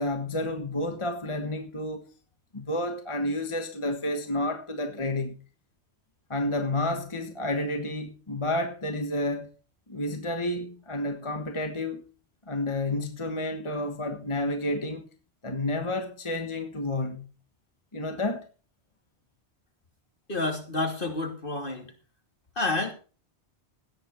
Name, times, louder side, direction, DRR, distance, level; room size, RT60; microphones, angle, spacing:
voice 1, 0.0-2.1 2.5-5.4 6.3-9.5 9.9-12.0 12.5-15.1 15.4-17.3 17.9-18.5, left 1 dB, 30° left, 1.5 m, -30 dB
voice 2, 20.3-21.9 22.6-22.9, left 2 dB, 55° left, 2.9 m, -29 dB
16.5 x 9.8 x 4.4 m
omnidirectional pair, 1.1 m